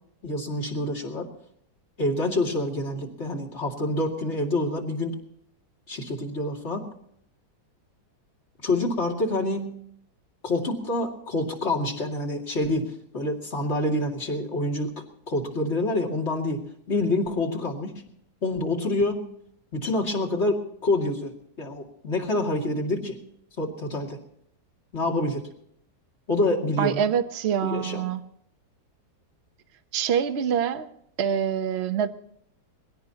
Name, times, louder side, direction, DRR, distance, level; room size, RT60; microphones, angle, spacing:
voice 1, 0.2-1.3 2.0-5.2 5.9-6.9 8.6-9.8 10.4-18.0 18.4-19.2 19.7-21.3 21.6-23.2 23.6-24.2 24.9-25.4 26.3-27.1 27.6-28.0, left 2 dB, 40° left, 1 dB, 2.7 m, -27 dB
voice 2, 26.8-28.2 29.9-30.9 31.2-32.1, right 8 dB, 45° right, 8 dB, 1.0 m, -25 dB
22.0 x 17.0 x 2.9 m, 0.70 s
omnidirectional pair, 1.9 m